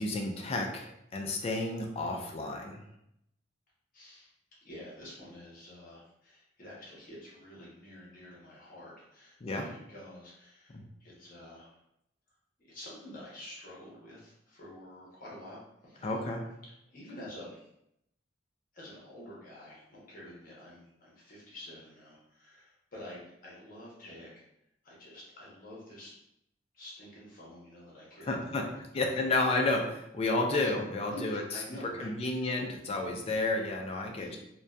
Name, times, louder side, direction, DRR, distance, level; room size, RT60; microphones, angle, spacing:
voice 1, 0.0-2.8 9.4-9.7 10.7-10.8 16.0-16.5 28.3-28.7 28.9-31.4 32.0-34.4, left 2 dB, 30° left, 2 dB, 0.4 m, -31 dB
voice 2, 3.9-4.3 4.6-11.8 12.6-16.1 16.8-17.7 18.7-24.4 24.8-26.1 26.7-29.2 30.6-30.7 31.1-32.6 34.2-34.4, left 1 dB, 50° left, -5 dB, 0.8 m, -48 dB
2.6 x 2.2 x 2.2 m, 0.79 s
head